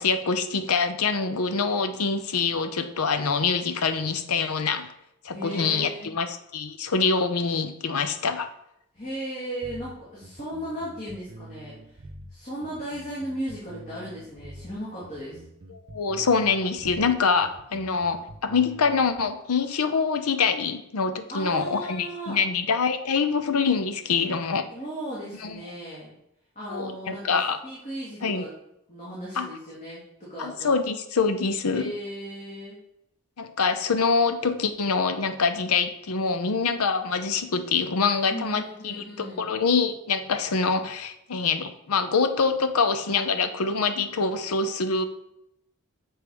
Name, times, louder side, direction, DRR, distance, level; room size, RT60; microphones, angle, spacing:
voice 1, 0.0-4.9 5.2-8.5 15.7-24.6 25.4-25.6 26.7-27.6 28.2-28.5 29.4-29.5 30.4-31.9 33.4-45.0, left 5 dB, 70° left, 10 dB, 0.7 m, -25 dB
voice 2, 5.3-6.1 8.9-12.0 12.3-15.4 21.3-22.4 24.7-26.1 26.6-28.5 28.9-30.8 31.7-32.8 38.3-39.5, equal, 35° left, -8 dB, 2.1 m, -36 dB
sound 1, 9.6-19.2, right 1 dB, 45° right, 0.7 m, -46 dB
7.0 x 4.5 x 4.8 m, 0.81 s
head